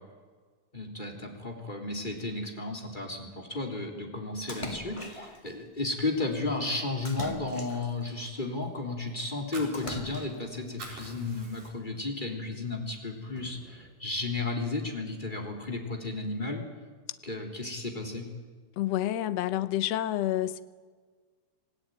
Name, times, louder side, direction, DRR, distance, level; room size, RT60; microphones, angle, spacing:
voice 1, 0.7-16.6 17.2-18.3, left 2 dB, 15° left, 3.1 m, -33 dB
Splash splatter, 4.5-5.5 7.0-8.1 9.7-10.6, left 2 dB, 45° left, 0.4 m, -40 dB
Fire, 9.3-10.4 10.7-12.0 12.4-12.6 13.0-13.9, right 3 dB, 60° right, 5.8 m, -46 dB
voice 2, 18.8-20.6, left 13 dB, 80° left, 1.4 m, -28 dB
27.0 x 17.5 x 9.2 m
omnidirectional pair, 4.2 m